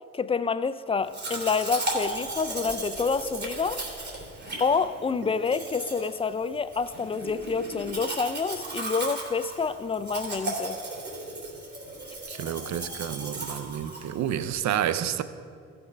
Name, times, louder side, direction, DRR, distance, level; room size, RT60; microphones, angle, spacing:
voice 1, 0.1-3.8 4.6-10.8, left 5 dB, 20° left, 14 dB, 0.4 m, -28 dB
Domestic sounds home sounds, 1.1-14.5, right 2 dB, 35° right, 3.2 m, -36 dB
voice 2, 12.3-15.2, right 10 dB, 65° right, 13 dB, 0.6 m, -29 dB
15.0 x 6.1 x 5.1 m, 2.3 s
cardioid pair, 90°, 30 cm